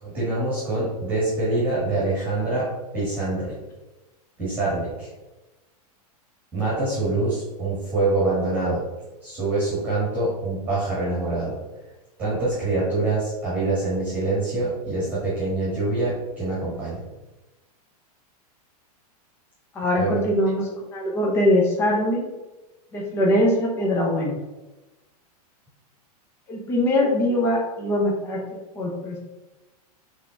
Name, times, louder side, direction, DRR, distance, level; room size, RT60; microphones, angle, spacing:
voice 1, 0.0-2.7 2.9-3.5 4.4-5.1 6.5-8.8 9.2-11.5 12.2-17.0 20.0-20.2, right 2 dB, 10° right, -8 dB, 1.8 m, -25 dB
voice 2, 19.7-22.2 22.9-24.3 26.5-28.4 28.7-29.2, left 1 dB, 10° left, -2 dB, 0.8 m, -22 dB
5.6 x 3.5 x 5.1 m, 1.1 s
supercardioid pair, 180°, 20 cm